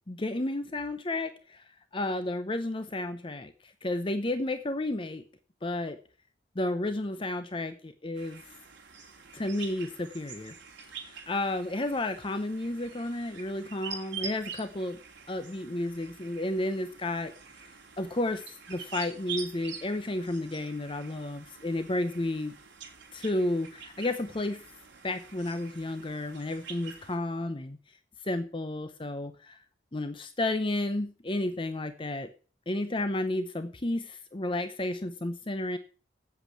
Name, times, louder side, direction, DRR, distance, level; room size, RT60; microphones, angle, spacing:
voice 1, 0.1-1.6 1.9-5.2 5.6-6.0 6.6-8.4 9.3-10.5 11.3-15.0 15.3-17.3 18.0-18.4 18.7-22.5 23.1-24.6 25.0-27.8 28.3-29.6 29.9-32.3 32.7-35.8, left 1 dB, 25° left, 9 dB, 0.7 m, -32 dB
sound 1, 8.1-27.2, right 6 dB, 75° right, 2.6 m, -46 dB
8.2 x 8.1 x 8.4 m, 0.40 s
head